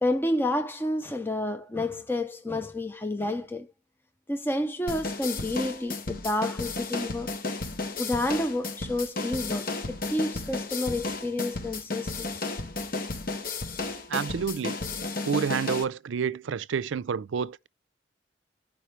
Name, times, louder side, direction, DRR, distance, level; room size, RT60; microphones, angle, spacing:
voice 1, 0.0-3.7 4.3-7.3 8.0-12.3, left 1 dB, 10° left, 0.6 m, -29 dB
sound 1, 4.9-15.8, left 3 dB, 50° left, 1.1 m, -33 dB
voice 2, 14.1-14.7 15.3-17.7, right 6 dB, 90° right, 0.4 m, -29 dB
14.0 x 5.1 x 3.2 m
head